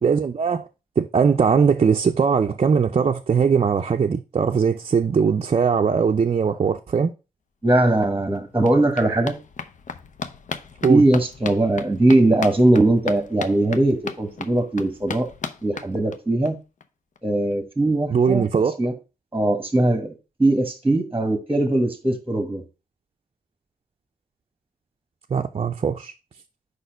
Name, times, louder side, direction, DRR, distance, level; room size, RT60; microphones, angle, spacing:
voice 1, 0.0-0.7 1.0-7.1 10.8-11.1 18.1-18.8 25.3-26.1, right 6 dB, 40° right, 0.5 m, -20 dB
voice 2, 7.6-9.4 10.9-15.3 15.6-16.6 17.2-18.4 18.8-18.9 19.3-20.1 20.4-22.6, right 2 dB, 15° right, 1.2 m, -20 dB
sound 1, 7.7-7.8 8.0-16.5 16.8-16.9 17.2-17.3 17.5-17.6, left 5 dB, 55° left, 0.7 m, -36 dB
5.1 x 4.2 x 5.1 m
cardioid pair, 60°, 15 cm